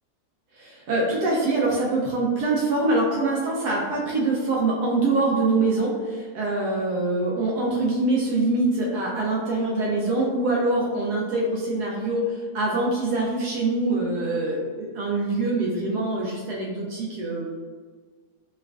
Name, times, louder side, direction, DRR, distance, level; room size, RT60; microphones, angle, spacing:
voice 1, 0.5-17.5, right 2 dB, 80° right, -4 dB, 1.1 m, -24 dB
4.3 x 2.4 x 2.3 m, 1.5 s
omnidirectional pair, 1.7 m